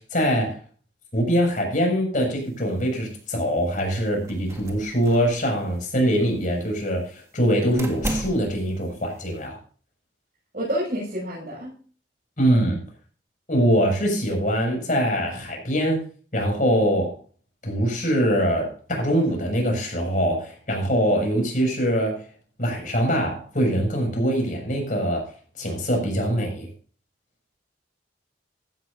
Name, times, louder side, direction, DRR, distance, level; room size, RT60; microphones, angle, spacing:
voice 1, 0.1-0.6 1.1-9.6 12.4-12.8 13.5-16.0 16.3-17.1 17.6-22.2 22.6-25.3 25.6-26.7, equal, 50° left, 1 dB, 6.8 m, -23 dB
sound 1, 2.4-9.5, right 1 dB, 15° right, 1.8 m, -37 dB
voice 2, 10.5-11.7, equal, 50° right, -5 dB, 7.1 m, -28 dB
16.0 x 12.5 x 2.8 m, 0.41 s
head